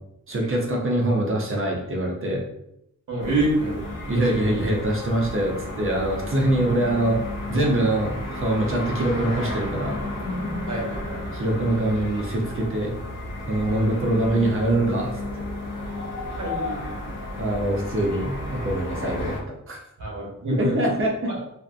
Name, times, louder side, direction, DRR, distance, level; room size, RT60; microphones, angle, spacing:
voice 1, 0.3-2.4 4.1-7.2 7.5-10.0 11.3-12.9 13.5-15.4 17.4-19.4 19.7-19.8 20.5-21.3, right 1 dB, 40° right, -1 dB, 0.6 m, -24 dB
voice 2, 3.1-3.9 10.7-11.2 13.7-13.9 16.3-16.9 20.0-20.7 21.3-21.4, right 1 dB, 60° right, -4 dB, 1.0 m, -27 dB
sound 1, 3.2-19.4, left 1 dB, 80° left, 0.8 m, -33 dB
sound 2, 9.1-11.3 14.1-14.3, left 2 dB, 35° left, 0.5 m, -36 dB
2.6 x 2.5 x 2.3 m, 0.80 s
wide cardioid pair, 150°, 32 cm